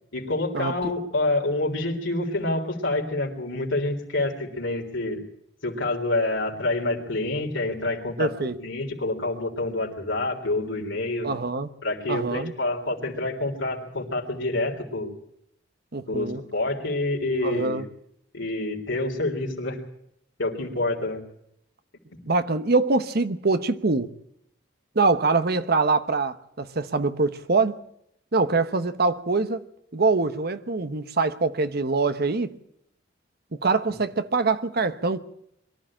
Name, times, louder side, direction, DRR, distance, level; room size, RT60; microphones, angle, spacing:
voice 1, 0.1-5.2 5.6-11.3 11.8-15.1 16.1-17.9 18.3-19.8 20.4-21.2 33.9-34.0, left 2 dB, 90° left, 3.6 m, -27 dB
voice 2, 8.2-8.6 11.2-11.7 12.1-12.5 15.9-16.4 17.4-17.8 22.3-24.1 24.9-27.8 28.3-29.6 29.9-32.5 33.6-35.2, right 3 dB, 55° right, 1.1 m, -24 dB
22.5 x 13.0 x 8.8 m
head